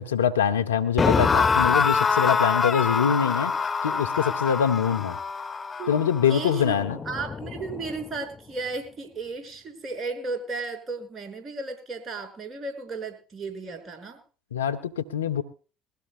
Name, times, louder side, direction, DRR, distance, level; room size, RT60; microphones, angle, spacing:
voice 1, 0.0-3.5 3.8-5.2 5.9-7.0 14.5-15.4, left 8 dB, 90° left, 10 dB, 0.9 m, -24 dB
sound 1, 1.0-8.1, left 5 dB, 30° left, 0.9 m, -25 dB
voice 2, 5.8-6.8 7.1-14.2, right 3 dB, 35° right, 5 dB, 5.7 m, -34 dB
22.0 x 15.5 x 2.2 m, 0.37 s
hypercardioid pair, 65°, 0 cm